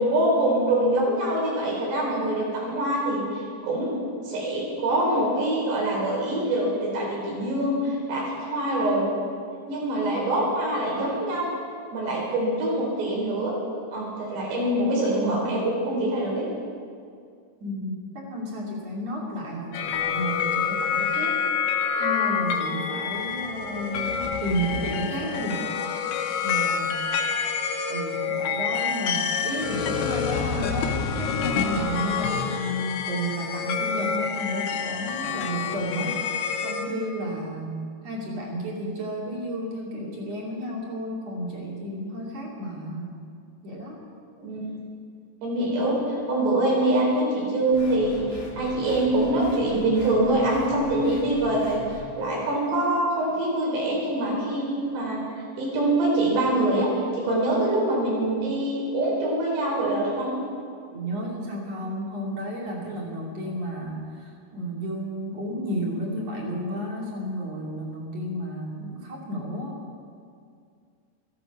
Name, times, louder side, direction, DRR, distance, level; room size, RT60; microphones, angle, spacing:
voice 1, 0.0-3.9 4.2-9.0 9.7-11.5 11.9-13.5 13.9-16.5 44.4-44.8 45.4-55.2 55.6-56.9 57.1-60.3, right 1 dB, 70° right, -3 dB, 6.4 m, -24 dB
voice 2, 17.6-18.0 18.3-21.4 22.0-25.7 26.0-26.1 26.4-27.0 27.9-36.2 36.6-43.2 43.6-44.0 60.9-69.8, equal, 40° right, -3 dB, 3.5 m, -32 dB
sound 1, 19.7-36.9, left 6 dB, 70° left, 2.3 m, -27 dB
sound 2, 47.7-52.1, left 4 dB, 85° left, 4.7 m, -41 dB
16.0 x 15.0 x 6.1 m, 2.3 s
omnidirectional pair, 5.1 m